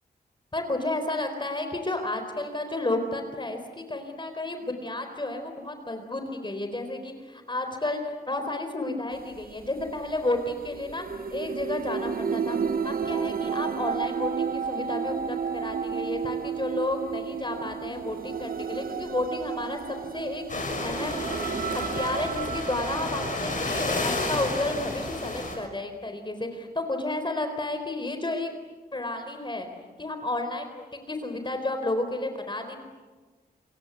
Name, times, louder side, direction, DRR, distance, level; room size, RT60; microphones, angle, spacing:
voice 1, 0.5-11.0 11.3-12.6 12.8-19.8 20.1-21.3 21.7-28.5 28.9-29.7 30.0-32.8, left 2 dB, 30° left, 6 dB, 4.2 m, -32 dB
sound 1, 9.1-25.7, right 6 dB, 65° right, 1.0 m, -32 dB
sound 2, 20.5-25.6, left 2 dB, 50° left, 6.2 m, -31 dB
28.5 x 24.0 x 8.4 m, 1.3 s
wide cardioid pair, 85°, 17 cm